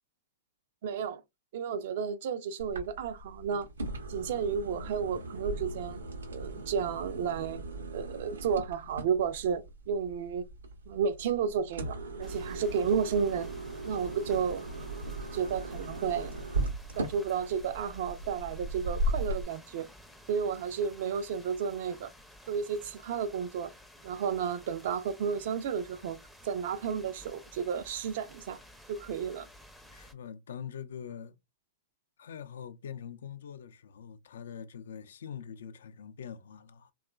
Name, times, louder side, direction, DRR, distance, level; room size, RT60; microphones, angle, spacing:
voice 1, 0.8-1.2 1.5-3.7 4.1-6.0 6.3-7.6 7.9-10.5 10.9-13.5 13.8-14.6 15.3-16.4 17.0-19.9 20.3-22.1 22.5-23.7 24.0-26.2 26.4-28.6 28.9-29.5, right 7 dB, 60° right, 0.4 m, -32 dB
sound 1, 2.6-19.4, right 1 dB, 85° right, 0.7 m, -38 dB
sound 2, 12.2-30.1, equal, ahead, 0.5 m, -54 dB
voice 2, 29.9-31.4 32.2-36.9, left 8 dB, 75° left, 0.4 m, -44 dB
2.9 x 2.3 x 2.2 m
hypercardioid pair, 115°, 0 cm